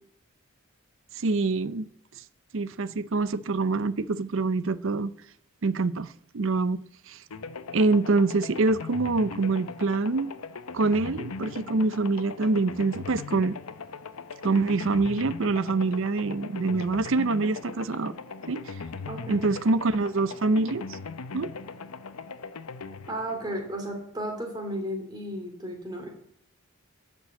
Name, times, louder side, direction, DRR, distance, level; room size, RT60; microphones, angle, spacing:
voice 1, 1.2-1.9 2.5-5.1 5.6-6.8 7.1-7.2 7.7-10.3 10.7-13.6 14.4-18.1 18.5-18.7 19.3-21.0 21.3-21.5, right 3 dB, 60° right, 0.6 m, -25 dB
sound 1, 7.3-24.2, left 4 dB, 80° left, 0.7 m, -40 dB
voice 2, 19.1-19.4 23.1-26.1, right 1 dB, 20° right, 2.7 m, -34 dB
14.0 x 5.4 x 8.2 m
head